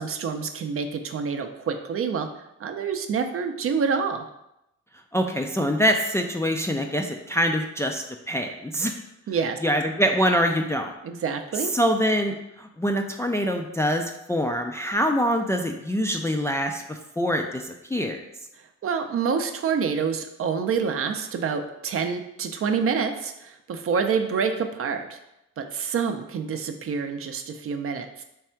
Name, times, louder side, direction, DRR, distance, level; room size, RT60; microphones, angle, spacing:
voice 1, 0.0-2.3 2.6-4.2 9.3-9.6 11.0-11.7 18.8-25.2 25.6-28.2, right 6 dB, 45° right, 6 dB, 0.5 m, -27 dB
voice 2, 5.1-8.9 9.6-10.9 11.5-18.2, equal, 10° left, 3 dB, 0.3 m, -25 dB
3.5 x 3.3 x 4.4 m, 0.86 s
cardioid pair, 90°, 30 cm